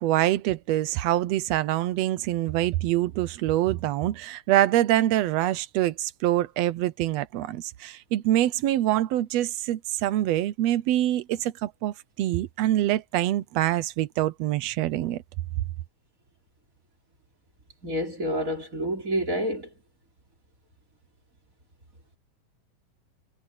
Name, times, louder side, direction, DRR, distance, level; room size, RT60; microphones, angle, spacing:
voice 1, 0.0-15.2, right 14 dB, 75° right, 1.6 m, -25 dB
voice 2, 17.8-19.7, equal, 25° right, 3.8 m, -28 dB
omnidirectional pair, 3.7 m